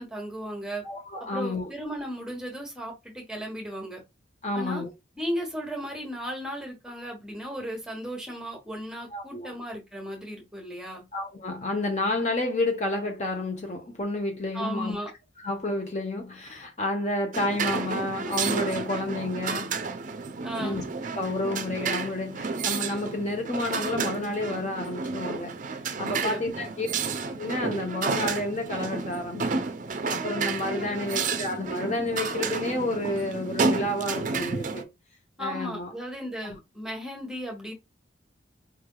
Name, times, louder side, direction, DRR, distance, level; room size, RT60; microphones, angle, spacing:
voice 1, 0.0-0.8 1.3-4.0 4.5-4.8 5.2-11.0 14.5-15.1 20.4-20.8 26.2-26.7 30.8-31.2 35.4-37.7, equal, 5° right, 1.1 m, -35 dB
voice 2, 0.8-1.7 4.4-4.9 9.1-9.6 11.1-15.0 15.4-19.8 20.6-20.8 21.2-25.6 26.0-26.9 27.4-29.7 30.1-34.9 35.4-35.9 36.4-36.6, left 2 dB, 35° left, 0.8 m, -30 dB
sound 1, 17.3-34.8, right 4 dB, 40° right, 0.5 m, -31 dB
4.7 x 3.3 x 2.2 m
head